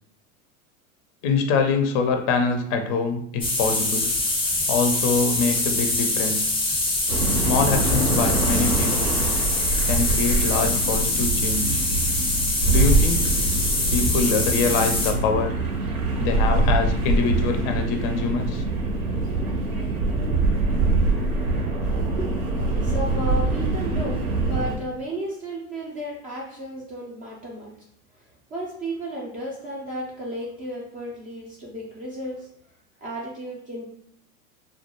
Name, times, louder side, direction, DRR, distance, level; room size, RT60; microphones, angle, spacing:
voice 1, 1.2-4.1 4.7-6.5 7.5-9.1 9.8-11.8 12.7-13.3 13.9-15.5 16.2-18.6, left 4 dB, 40° left, 5 dB, 0.5 m, -24 dB
sound 1, 3.4-15.1, left 2 dB, 10° left, 0.7 m, -24 dB
sound 2, 7.1-24.8, right 3 dB, 80° right, 0.9 m, -24 dB
voice 2, 22.8-24.2 24.5-27.7 28.5-32.5 33.0-33.9, right 1 dB, 20° right, -3 dB, 0.4 m, -33 dB
2.3 x 2.1 x 2.9 m, 0.66 s
hypercardioid pair, 110°, 43 cm